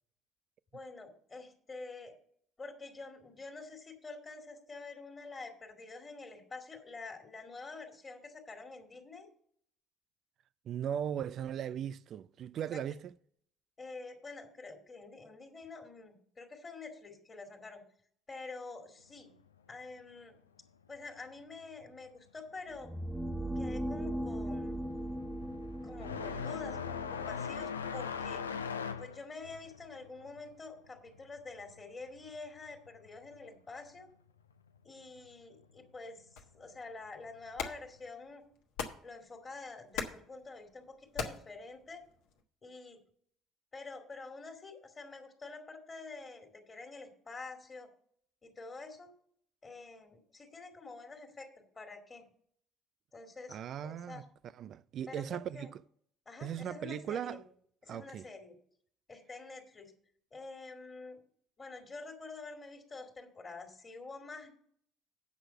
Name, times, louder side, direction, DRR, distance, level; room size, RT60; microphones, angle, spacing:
voice 1, 0.7-2.1 2.6-9.3 13.8-17.8 18.3-19.3 19.7-20.4 20.9-22.9 23.6-24.8 25.8-28.5 29.0-34.1 34.8-38.4 39.0-42.0 42.6-43.0 43.7-47.9 48.4-49.1 49.6-51.5 51.7-52.3 53.1-53.6 53.8-54.2 55.1-55.7 56.3-57.4 57.8-58.6 59.1-59.9 60.3-61.2 61.6-64.5, left 3 dB, 30° left, 2.0 m, -47 dB
voice 2, 10.6-13.1 53.5-54.2 54.5-55.8 56.4-57.4 57.9-58.3, right 9 dB, 50° right, 0.4 m, -38 dB
sound 1, 22.7-28.6, right 1 dB, 5° right, 0.7 m, -39 dB
sound 2, 23.4-23.7 24.0-32.4 32.7-33.7 34.7-34.8 35.6-35.7 37.4-37.6, left 6 dB, 85° left, 0.4 m, -40 dB
sound 3, 36.4-42.4, left 6 dB, 60° left, 1.3 m, -44 dB
8.3 x 6.2 x 6.8 m
figure-of-eight pair, 55°, 0 cm